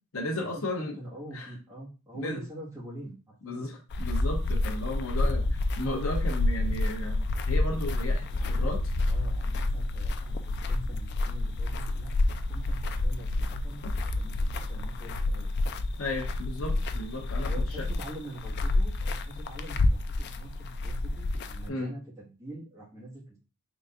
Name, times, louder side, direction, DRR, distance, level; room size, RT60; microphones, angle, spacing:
voice 1, 0.1-1.0 1.3-1.5 2.1-2.4 3.4-5.4 5.8-8.8 16.0-17.8 21.7-21.9, left 1 dB, 65° left, 2 dB, 0.8 m, -34 dB
voice 2, 0.9-3.7 5.0-5.4 8.3-8.7 9.1-15.5 17.4-23.4, right 1 dB, 15° right, -7 dB, 1.5 m, -45 dB
sound 1, 3.9-21.7, left 2 dB, 50° left, 0.3 m, -29 dB
3.9 x 3.6 x 2.4 m, 0.33 s
head